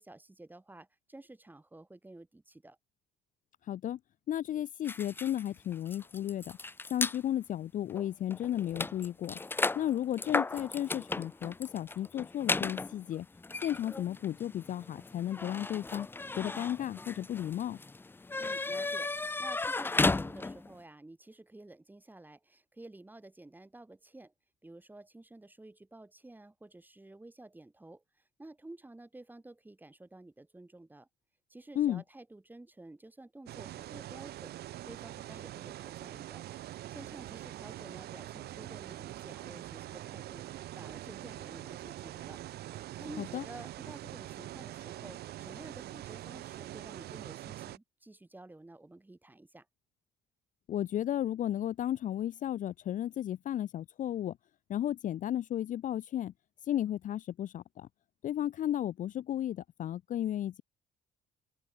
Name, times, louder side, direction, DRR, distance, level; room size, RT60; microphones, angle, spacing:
voice 1, 0.0-2.8 18.4-24.3 24.6-31.1 31.5-34.5 34.8-36.4 36.9-42.4 43.0-49.7, right 2 dB, 10° right, 6.7 m, -51 dB
voice 2, 3.7-4.0 4.3-6.6 6.9-9.4 9.7-13.3 13.6-16.1 16.4-17.8 31.8-32.0 43.2-43.4 50.7-54.4 54.7-56.3 56.6-57.9 58.2-60.6, left 11 dB, 50° left, 0.6 m, -34 dB
sound 1, 4.8-7.2 7.9-8.0 8.3-20.8, left 3 dB, 15° left, 0.6 m, -35 dB
sound 2, 33.5-47.8, right 14 dB, 70° right, 2.5 m, -44 dB
open air
cardioid pair, 110°, 17 cm